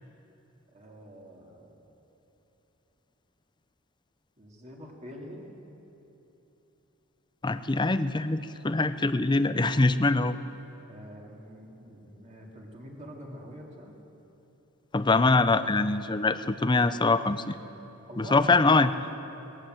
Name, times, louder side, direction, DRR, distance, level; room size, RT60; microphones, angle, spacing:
voice 1, 0.7-1.8 4.4-5.4 10.9-14.0 18.1-18.7, equal, 35° right, -1 dB, 2.8 m, -45 dB
voice 2, 7.4-10.4 14.9-17.6 18.2-18.9, left 3 dB, 20° left, 12 dB, 0.6 m, -23 dB
20.0 x 17.0 x 7.9 m, 3.0 s
head